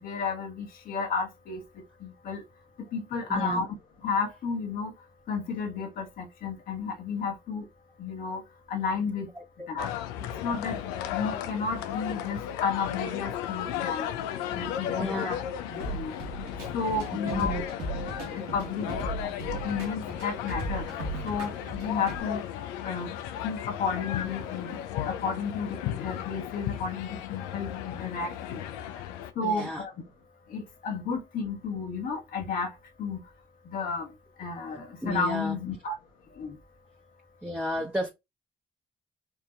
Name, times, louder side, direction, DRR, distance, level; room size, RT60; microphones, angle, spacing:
voice 1, 0.0-2.4 2.8-3.7 4.0-4.9 5.3-7.7 8.0-8.4 8.7-9.3 9.7-9.9 10.2-10.8 11.1-14.1 14.5-15.4 15.7-16.2 16.7-17.9 18.3-18.9 19.2-20.9 21.2-28.8 29.3-30.1 30.5-33.3 33.6-36.0 36.3-36.6, left 5 dB, 65° left, 1.5 m, -32 dB
voice 2, 3.3-3.6 9.4-9.7 15.0-15.3 17.3-17.6 28.9-29.0 29.4-29.8 35.0-35.5 37.4-38.1, equal, 10° right, 1.2 m, -32 dB
sound 1, 9.8-29.3, left 10 dB, 85° left, 0.5 m, -35 dB
sound 2, 15.8-22.2, right 2 dB, 90° right, 1.4 m, -37 dB
4.6 x 2.7 x 3.7 m
hypercardioid pair, 50°, 15 cm